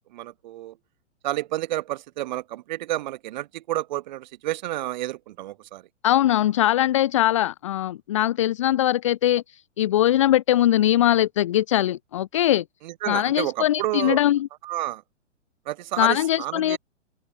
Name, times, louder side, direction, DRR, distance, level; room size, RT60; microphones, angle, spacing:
voice 1, 0.1-0.8 1.2-5.8 12.8-14.2 14.6-15.0 15.7-16.8, right 15 dB, 35° right, 1.6 m, -30 dB
voice 2, 6.0-12.6 13.1-14.5 16.0-16.8, left 13 dB, 25° left, 0.5 m, -21 dB
open air
figure-of-eight pair, 115°, 37 cm